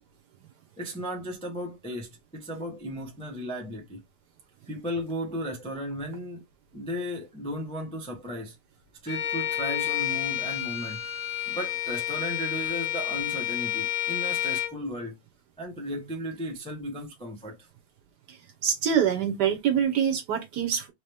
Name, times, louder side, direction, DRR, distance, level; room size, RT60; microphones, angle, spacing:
voice 1, 0.8-4.0 4.7-6.4 6.7-8.6 9.0-11.0 11.5-15.2 15.6-17.7, equal, 10° left, 0.4 m, -35 dB
Bowed string instrument, 9.1-14.8, left 13 dB, 65° left, 1.0 m, -30 dB
voice 2, 18.6-20.9, right 8 dB, 65° right, 1.2 m, -25 dB
4.1 x 2.9 x 3.3 m
omnidirectional pair, 2.3 m